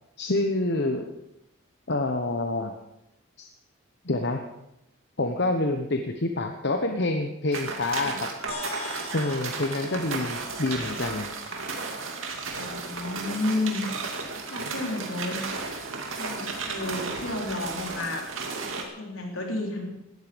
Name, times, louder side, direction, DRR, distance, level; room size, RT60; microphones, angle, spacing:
voice 1, 0.2-1.1 1.9-2.7 3.4-3.5 4.0-4.5 5.2-8.3 9.1-11.3, left 2 dB, 55° left, 5 dB, 1.1 m, -27 dB
sound 1, 7.5-18.8, right 4 dB, 70° right, 2.5 m, -34 dB
sound 2, 8.5-13.1, left 3 dB, 30° left, 3.6 m, -43 dB
voice 2, 12.5-13.8 14.5-15.4 16.2-18.3 18.9-19.9, left 2 dB, 70° left, 1 dB, 3.7 m, -31 dB
18.0 x 13.0 x 5.2 m, 0.87 s
head